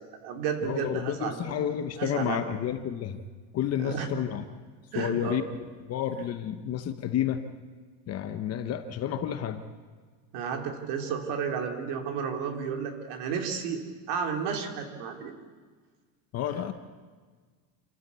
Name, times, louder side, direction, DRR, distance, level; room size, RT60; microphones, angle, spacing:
voice 1, 0.0-1.5 2.0-2.4 3.8-4.1 4.9-5.4 10.3-13.8 14.1-15.4, right 6 dB, 55° right, 4 dB, 3.2 m, -32 dB
voice 2, 0.6-3.2 3.5-4.4 5.0-5.4 5.9-7.5 8.1-9.6 16.3-16.7, left 10 dB, 30° left, 9 dB, 1.0 m, -30 dB
28.0 x 13.5 x 8.3 m, 1.5 s
cardioid pair, 160°, 48 cm